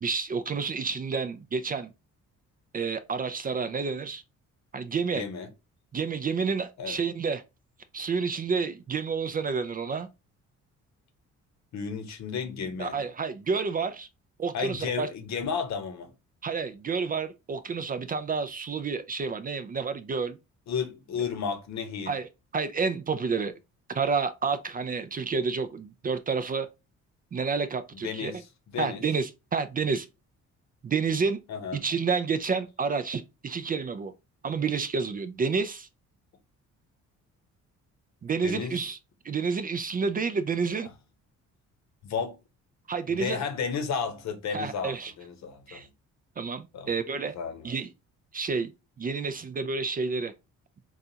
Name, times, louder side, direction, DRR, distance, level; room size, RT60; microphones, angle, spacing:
voice 1, 0.0-1.9 2.7-4.2 4.7-5.2 5.9-7.4 7.9-10.1 12.8-14.1 14.4-15.1 16.4-20.4 22.1-22.3 22.5-23.5 23.9-26.7 27.3-28.3 28.8-30.1 30.8-31.4 31.7-34.1 34.4-35.9 38.2-39.0 39.2-40.9 42.9-43.4 44.5-45.1 45.7-45.9 46.4-47.3 47.6-47.9 48.3-48.7 49.0-50.3, right 5 dB, 30° right, 0.4 m, -29 dB
voice 2, 5.1-5.5 6.8-7.0 11.7-13.0 14.5-16.1 20.7-22.1 28.0-29.0 31.5-31.8 38.4-38.8 40.8-40.9 42.0-42.4 43.1-45.8 46.7-46.9 47.3-47.7, left 6 dB, 65° left, 0.8 m, -33 dB
3.9 x 2.4 x 2.7 m
cardioid pair, 90°, 30 cm